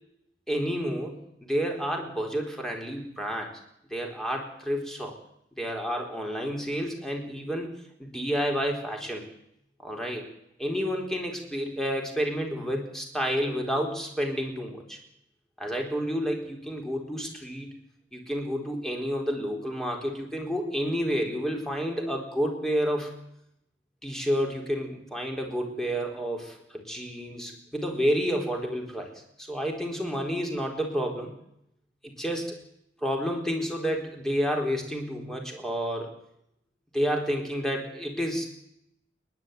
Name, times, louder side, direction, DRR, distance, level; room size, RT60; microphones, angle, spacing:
voice 1, 0.5-3.5 3.9-5.2 5.6-7.7 8.0-9.2 9.8-10.3 10.6-15.0 15.6-17.7 18.1-23.1 24.0-29.1 29.4-31.3 32.0-32.6 33.0-36.1 36.9-38.5, equal, 5° left, 2 dB, 4.2 m, -30 dB
29.0 x 11.5 x 9.5 m, 0.77 s
head